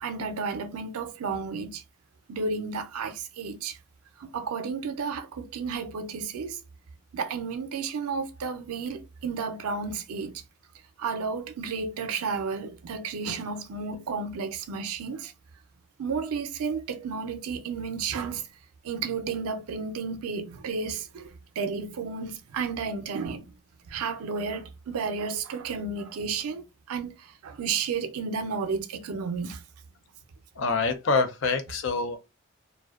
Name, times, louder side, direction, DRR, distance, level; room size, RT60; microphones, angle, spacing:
voice 1, 0.0-1.8 2.3-3.8 4.2-6.6 7.1-10.4 11.0-15.3 16.0-18.4 18.8-23.5 23.9-29.6, right 5 dB, 90° right, 0.4 m, -32 dB
voice 2, 30.6-32.2, left 4 dB, 60° left, 0.4 m, -26 dB
2.4 x 2.2 x 2.3 m
head